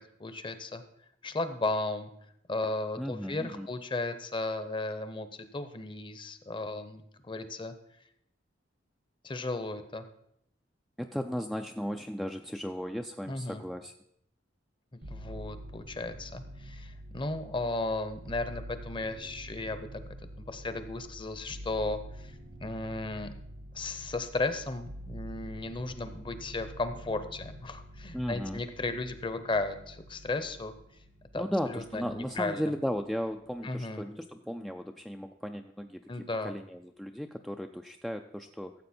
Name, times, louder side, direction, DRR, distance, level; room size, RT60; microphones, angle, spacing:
voice 1, 0.2-0.8 1.2-2.1 2.5-7.7 9.2-10.0 13.2-13.6 14.9-20.0 20.4-22.4 22.6-23.3 23.7-30.7 31.3-32.7 33.6-34.0 36.1-36.5, left 2 dB, 25° left, 10 dB, 0.8 m, -35 dB
voice 2, 3.0-3.7 11.0-13.9 28.1-28.6 31.3-38.7, equal, ahead, 4 dB, 0.3 m, -36 dB
sound 1, 15.0-32.4 32.8-33.6, equal, 75° right, 1.5 m, -47 dB
14.5 x 7.6 x 4.4 m, 0.75 s
head